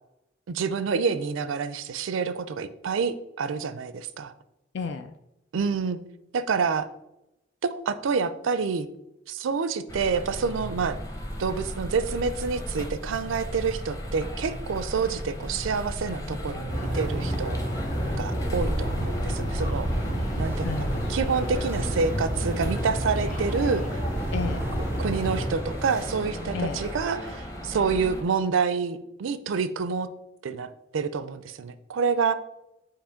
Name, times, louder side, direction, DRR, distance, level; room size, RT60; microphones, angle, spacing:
voice 1, 0.5-4.3 5.5-6.0 6.3-6.9 7.6-8.9 9.3-11.0 11.4-17.6 18.2-19.9 20.4-23.8 25.0-30.1 30.4-32.3, right 5 dB, 85° right, 13 dB, 0.4 m, -28 dB
voice 2, 4.7-5.2 20.6-21.2 24.3-24.7 26.5-26.8, left 4 dB, 65° left, 8 dB, 0.4 m, -32 dB
sound 1, 9.9-28.2, equal, 20° left, 0.9 m, -35 dB
sound 2, 16.7-25.5, equal, 40° left, 1.9 m, -29 dB
sound 3, 20.4-27.1, right 1 dB, 10° right, 0.3 m, -39 dB
7.2 x 2.9 x 5.0 m, 0.90 s
head